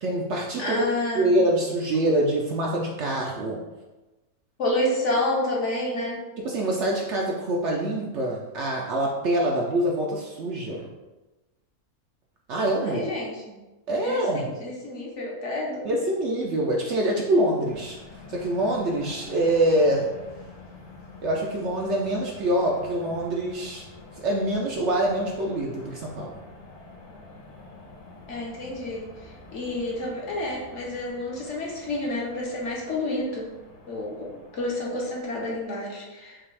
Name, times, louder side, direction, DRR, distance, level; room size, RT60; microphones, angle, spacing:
voice 1, 0.0-0.9 1.1-3.6 6.4-10.9 12.5-13.0 13.9-14.5 15.8-18.0 18.3-20.1 21.2-23.8 24.1-26.4, right 1 dB, 60° right, -1 dB, 0.8 m, -25 dB
voice 2, 0.6-1.3 4.6-6.2 12.8-13.3 14.0-15.9 28.3-33.5 33.9-36.4, left 1 dB, 55° left, -3 dB, 1.2 m, -29 dB
sound 1, 17.6-35.7, left 3 dB, 85° left, 1.2 m, -47 dB
5.9 x 2.4 x 3.2 m, 1.1 s
omnidirectional pair, 1.5 m